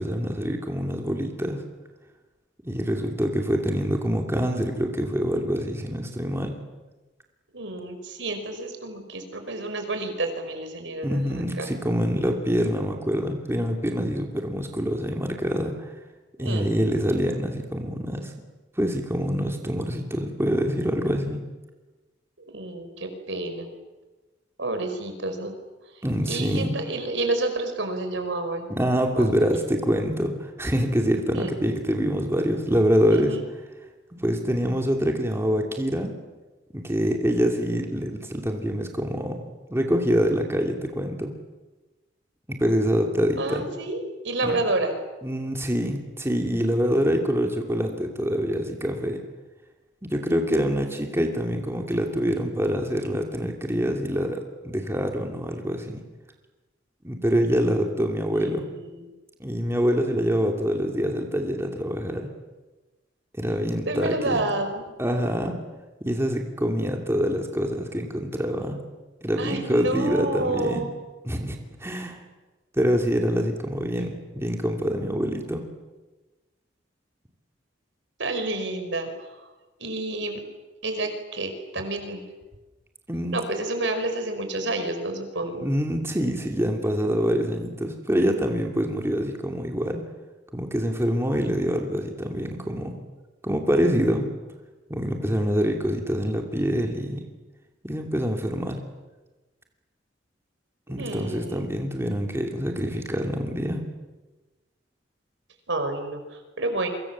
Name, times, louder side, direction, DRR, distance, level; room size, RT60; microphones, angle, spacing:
voice 1, 0.0-1.6 2.6-6.6 11.0-15.9 16.4-18.3 18.8-21.5 26.0-26.8 28.7-33.4 34.2-36.1 36.7-39.4 39.7-41.3 42.5-43.6 44.4-44.6 45.2-49.2 50.0-56.0 57.0-58.7 59.4-62.3 63.4-64.5 65.0-65.6 66.1-68.8 69.2-70.9 71.2-72.2 72.8-75.7 83.1-83.4 85.6-90.0 90.5-93.0 93.4-94.3 94.9-97.2 97.8-98.8 100.9-103.8, equal, 15° right, 3 dB, 2.7 m, -25 dB
voice 2, 7.5-11.7 16.4-16.8 22.4-23.7 24.6-25.5 26.2-28.7 29.1-29.3 31.3-31.5 33.1-33.4 43.4-45.0 58.3-59.0 63.9-64.9 69.4-70.9 78.2-79.3 79.8-80.5 80.8-82.2 83.3-85.7 101.0-101.8 105.7-106.9, right 2 dB, 75° right, 7 dB, 5.3 m, -29 dB
29.0 x 25.0 x 7.4 m, 1.2 s
head